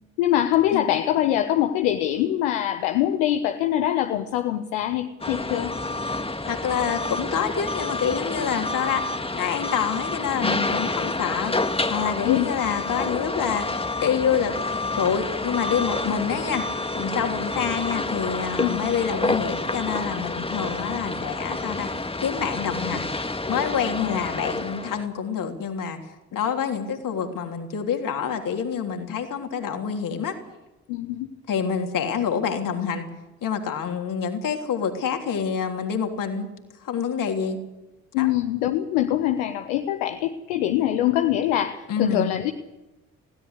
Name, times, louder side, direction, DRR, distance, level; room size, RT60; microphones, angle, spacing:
voice 1, 0.2-5.7 12.2-12.5 16.1-16.2 18.6-18.8 24.0-24.2 30.9-31.3 38.1-42.5, left 12 dB, 70° left, 7 dB, 1.3 m, -23 dB
sound 1, 5.2-25.1, left 2 dB, 15° left, 1.8 m, -29 dB
voice 2, 6.5-9.0 9.3-11.6 11.9-14.5 14.9-16.7 17.0-21.9 22.2-23.1 23.5-26.0 26.3-30.4 31.5-33.1 33.4-36.5 36.8-37.6 38.2-38.3 41.9-42.3, left 7 dB, 50° left, 4 dB, 3.4 m, -27 dB
21.0 x 17.0 x 8.2 m, 1.0 s
figure-of-eight pair, 45°, 41 cm